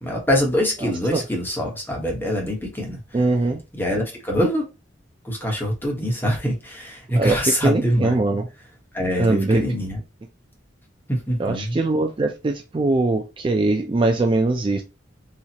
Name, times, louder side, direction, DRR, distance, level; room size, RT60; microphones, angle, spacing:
voice 1, 0.0-3.0 3.7-4.7 5.2-8.2 8.9-10.0 11.1-11.8, equal, 10° left, 1.2 m, -24 dB
voice 2, 3.1-3.6 7.1-8.5 9.2-9.6 11.4-14.8, right 2 dB, 25° right, 0.4 m, -21 dB
4.2 x 2.4 x 2.9 m
head